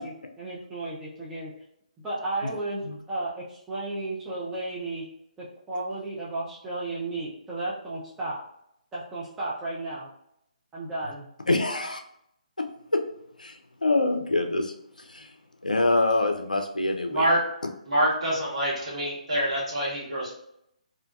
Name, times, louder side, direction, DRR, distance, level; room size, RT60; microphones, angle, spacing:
voice 1, 0.0-1.5 2.0-5.0 5.4-8.4 8.9-10.1 10.7-11.3, right 2 dB, 10° right, -8 dB, 0.4 m, -33 dB
voice 2, 11.5-12.0 13.4-15.3 15.6-17.3, left 2 dB, 75° left, 4 dB, 0.4 m, -25 dB
voice 3, 17.1-17.4 17.9-20.3, right 1 dB, 50° right, -5 dB, 1.2 m, -26 dB
2.4 x 2.2 x 2.5 m, 0.75 s
figure-of-eight pair, 140°, 4 cm